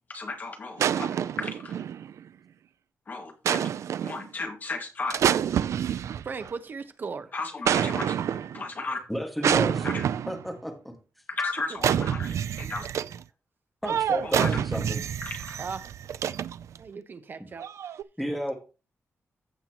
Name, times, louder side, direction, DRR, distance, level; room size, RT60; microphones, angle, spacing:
voice 1, 0.1-1.8 3.1-3.7 4.0-5.2 7.3-9.0 9.8-10.0 11.3-12.9 14.2-14.5 15.2-15.6, left 3 dB, 35° left, 1.9 m, -35 dB
sound 1, 0.8-2.2 3.5-4.3 5.1-6.5 7.7-8.6 9.4-10.5 11.8-13.2 13.8-16.8 17.6-18.0, right 9 dB, 75° right, 0.4 m, -27 dB
voice 2, 6.2-7.3 11.7-11.8 15.6-15.9 16.8-18.0, right 5 dB, 40° right, 0.9 m, -38 dB
voice 3, 9.1-9.9 10.3-10.7 13.8-15.0 18.2-18.5, equal, ahead, 1.7 m, -31 dB
15.0 x 5.8 x 2.9 m
wide cardioid pair, 180°, 5 cm